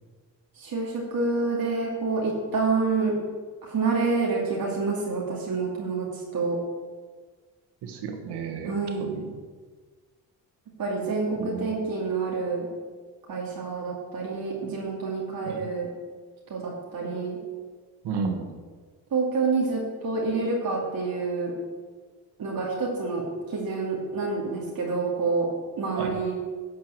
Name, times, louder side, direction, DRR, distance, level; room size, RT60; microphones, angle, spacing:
voice 1, 0.6-3.1 3.6-6.6 8.7-9.1 10.8-12.7 13.3-15.9 16.5-17.4 19.1-21.5 22.4-25.5 25.8-26.3, right 4 dB, 60° right, -3 dB, 2.5 m, -28 dB
voice 2, 7.8-9.4 11.4-11.7 15.4-15.7 18.0-18.5 26.0-26.1, right 5 dB, 85° right, 6 dB, 1.4 m, -32 dB
11.0 x 4.7 x 7.6 m, 1.4 s
cardioid pair, 80°, 39 cm